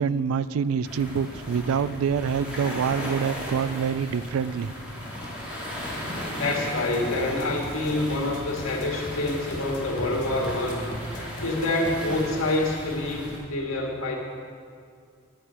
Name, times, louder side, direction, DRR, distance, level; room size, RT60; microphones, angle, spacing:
voice 1, 0.0-4.7, right 6 dB, 80° right, 16 dB, 0.3 m, -26 dB
sound 1, 0.8-13.4, equal, 5° right, 1.9 m, -36 dB
voice 2, 6.3-10.9 11.4-14.2, left 2 dB, 75° left, -1 dB, 1.7 m, -27 dB
sound 2, 6.7-12.1, left 2 dB, 60° left, 0.7 m, -44 dB
10.5 x 7.6 x 5.6 m, 2.1 s
head